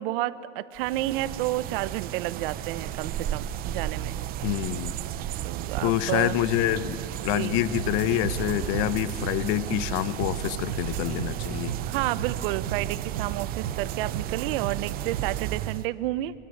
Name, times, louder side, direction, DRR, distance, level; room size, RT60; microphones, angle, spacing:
voice 1, 0.0-4.2 5.4-6.4 7.3-7.5 11.9-16.3, right 16 dB, 50° right, 16 dB, 0.9 m, -30 dB
sound 1, 0.8-15.9, right 12 dB, 25° right, 0.6 m, -34 dB
voice 2, 4.4-4.9 5.8-11.7, left 15 dB, 40° left, 16 dB, 1.0 m, -27 dB
sound 2, 7.7-15.5, right 10 dB, 80° right, 1.2 m, -36 dB
Wind instrument woodwind instrument, 8.3-12.5, left 4 dB, 80° left, 5.5 m, -52 dB
23.0 x 22.0 x 9.8 m, 2.3 s
supercardioid pair, 140°, 35 cm